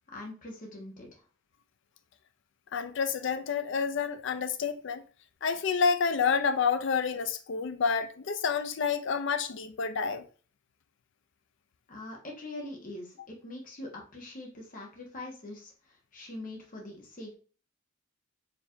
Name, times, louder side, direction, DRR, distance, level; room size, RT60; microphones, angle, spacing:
voice 1, 0.1-1.2 11.9-17.3, left 1 dB, 40° left, 1.2 m, -43 dB
voice 2, 2.7-5.1 5.4-10.2, left 5 dB, 60° left, 0.5 m, -29 dB
4.5 x 3.4 x 2.6 m
head